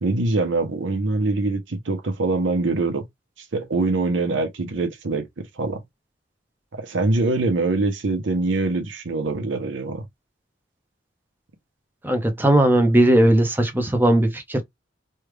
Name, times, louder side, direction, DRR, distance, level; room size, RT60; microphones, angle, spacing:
voice 1, 0.0-3.1 3.5-5.8 6.7-10.1, right 3 dB, 75° right, 0.8 m, -24 dB
voice 2, 12.0-14.6, right 1 dB, 10° right, 0.6 m, -18 dB
3.3 x 2.3 x 3.2 m
head